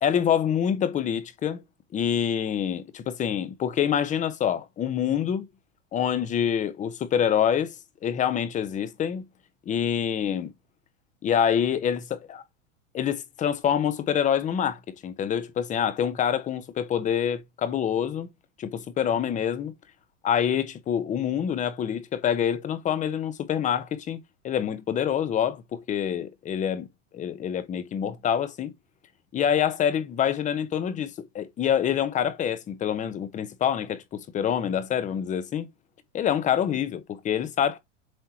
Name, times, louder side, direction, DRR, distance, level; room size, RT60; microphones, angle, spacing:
voice 1, 0.0-1.6 1.9-5.5 5.9-7.8 8.0-9.2 9.7-10.5 11.2-12.4 12.9-18.3 18.6-19.7 20.2-26.9 27.1-28.7 29.3-35.7 36.1-37.8, left 8 dB, 20° left, 0.8 m, -26 dB
7.8 x 4.4 x 2.8 m
supercardioid pair, 140°, 37 cm